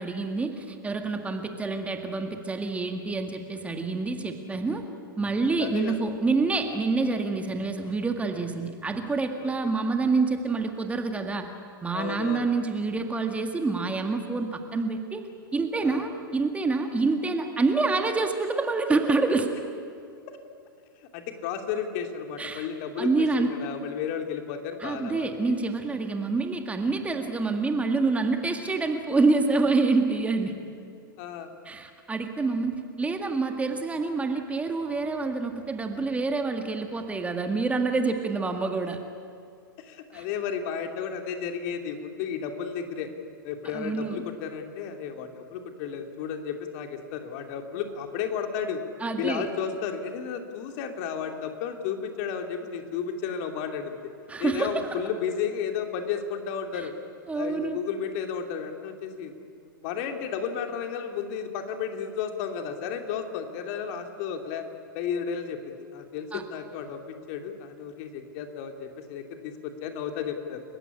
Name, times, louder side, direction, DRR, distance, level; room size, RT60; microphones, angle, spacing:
voice 1, 0.0-4.8 5.2-11.5 11.8-15.3 15.5-19.5 22.4-22.7 23.0-23.5 24.8-30.6 31.7-39.0 40.1-40.3 43.7-44.2 49.0-49.5 54.3-54.7 57.3-57.8 66.3-66.4, right 3 dB, 10° right, 5 dB, 1.9 m, -27 dB
voice 2, 5.6-6.0 9.4-9.5 11.9-12.4 15.8-16.1 21.1-25.4 31.2-31.5 39.8-43.1 43.4-48.8 49.2-53.9 54.4-56.9 57.3-59.3 59.8-64.6 64.9-65.6 65.9-70.6, left 7 dB, 45° left, 5 dB, 2.8 m, -33 dB
30.0 x 16.0 x 9.9 m, 2.4 s
hypercardioid pair, 105°, 12 cm